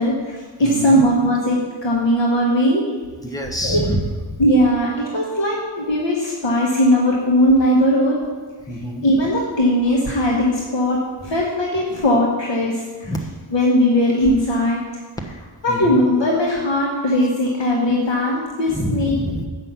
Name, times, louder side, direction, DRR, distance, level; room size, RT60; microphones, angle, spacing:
voice 1, 0.0-2.9 3.6-3.8 4.4-8.2 9.0-13.1 13.5-14.8 15.6-19.2, equal, 65° left, -3 dB, 1.3 m, -19 dB
voice 2, 0.6-1.0 3.2-4.0 4.3-4.4 8.7-9.0 13.0-13.2 15.7-16.0 18.7-19.4, equal, 5° left, 1 dB, 1.1 m, -26 dB
7.9 x 5.5 x 5.8 m, 1.4 s
wide cardioid pair, 80°, 48 cm